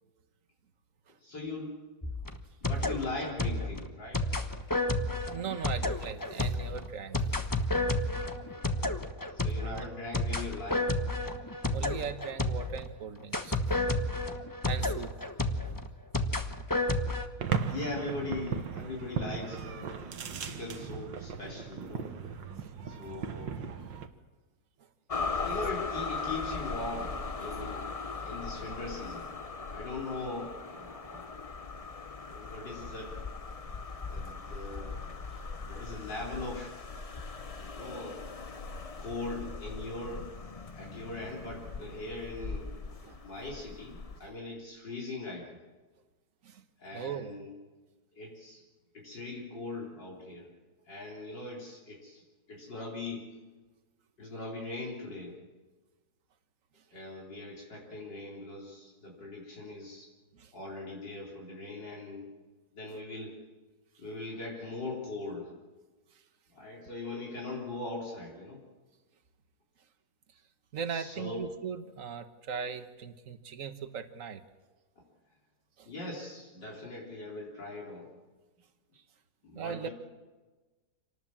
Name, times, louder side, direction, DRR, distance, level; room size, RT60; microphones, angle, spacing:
voice 1, 1.2-1.7 2.6-4.2 8.4-9.0 9.3-10.9 17.7-22.1 22.9-23.7 25.4-27.9 28.3-29.3 29.7-31.5 32.3-33.2 34.1-35.2 35.6-36.7 37.5-38.2 39.0-40.3 40.8-45.5 46.8-47.5 48.1-48.6 48.9-50.5 50.9-52.2 52.5-53.3 54.2-55.4 56.9-60.1 60.5-62.3 62.7-63.4 64.0-65.5 66.5-68.6 70.9-71.4 75.9-78.1 79.4-79.9, left 2 dB, 70° left, -3 dB, 4.6 m, -40 dB
sound 1, 2.0-12.9 13.3-17.3, left 2 dB, 15° left, 0.9 m, -31 dB
voice 2, 5.3-7.2 9.6-9.9 11.7-13.8 14.7-15.1 15.6-15.8 16.9-17.0 20.3-20.4 34.3-34.4 43.0-43.2 46.4-46.6 46.9-47.3 60.3-60.5 62.9-63.0 70.7-74.4 75.8-75.9 79.5-79.9, right 6 dB, 50° right, 9 dB, 1.5 m, -39 dB
sound 2, 17.4-24.1, right 6 dB, 80° right, 2.0 m, -37 dB
sound 3, 25.1-44.2, left 4 dB, 35° left, 0.6 m, -39 dB
27.0 x 19.0 x 7.4 m, 1.3 s
omnidirectional pair, 2.0 m